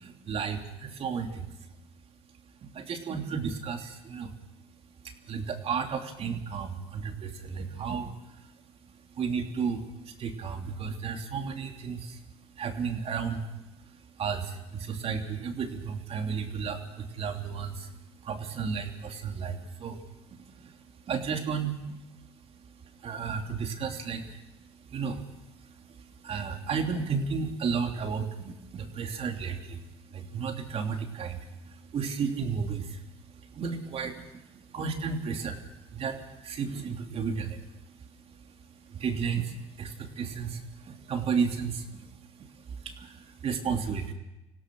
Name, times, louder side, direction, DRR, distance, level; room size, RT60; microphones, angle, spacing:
voice 1, 0.0-1.5 2.6-4.3 5.0-8.1 9.2-12.2 12.6-13.5 14.2-17.9 18.2-20.0 20.6-20.7 21.1-21.9 23.0-24.4 24.9-25.2 26.0-29.8 30.1-33.0 33.5-35.6 35.9-37.6 38.9-42.1 42.4-44.1, right 6 dB, 45° right, 4 dB, 3.1 m, -33 dB
26.0 x 16.5 x 6.3 m, 0.94 s
supercardioid pair, 85°, 14 cm